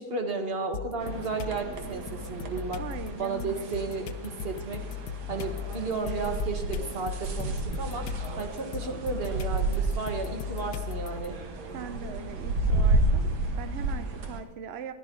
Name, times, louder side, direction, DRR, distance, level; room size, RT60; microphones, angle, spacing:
voice 1, 0.0-2.8 3.2-4.8 5.3-8.0 8.4-11.4, right 4 dB, 35° right, 4 dB, 1.4 m, -33 dB
sound 1, 0.7-1.6 2.1-11.3, left 10 dB, 85° left, 1.3 m, -38 dB
sound 2, 1.0-14.4, right 2 dB, 65° right, 1.7 m, -31 dB
voice 2, 2.8-3.9 11.7-14.9, right 6 dB, 90° right, 10 dB, 0.5 m, -41 dB
14.5 x 11.5 x 3.8 m, 1.2 s
omnidirectional pair, 2.0 m